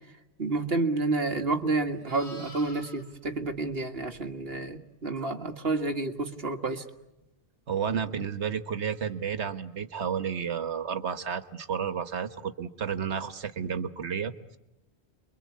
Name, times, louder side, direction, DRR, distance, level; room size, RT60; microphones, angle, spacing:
voice 1, 0.4-6.8, right 3 dB, 60° right, 6 dB, 2.1 m, -29 dB
Livestock farm animals working animals, 1.4-4.6 9.0-9.2, equal, 30° left, 6.1 m, -50 dB
voice 2, 7.7-14.6, right 7 dB, 90° right, 10 dB, 1.6 m, -31 dB
29.0 x 23.5 x 8.5 m, 0.94 s
omnidirectional pair, 1.1 m